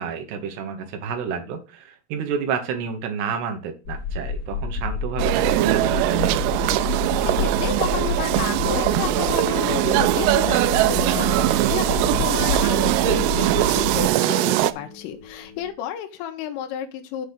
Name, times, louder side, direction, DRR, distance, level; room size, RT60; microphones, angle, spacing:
voice 1, 0.0-6.3 12.0-12.3, right 6 dB, 70° right, 6 dB, 2.7 m, -30 dB
On deck a Ferry, 3.8-14.1, left 4 dB, 40° left, 3.2 m, -29 dB
sound 1, 5.2-14.7, right 16 dB, 85° right, 3.1 m, -21 dB
voice 2, 7.2-17.3, left 10 dB, 85° left, 5 dB, 3.6 m, -31 dB
sound 2, 9.4-15.7, left 6 dB, 60° left, 2.8 m, -41 dB
8.2 x 4.0 x 6.6 m, 0.32 s
omnidirectional pair, 5.8 m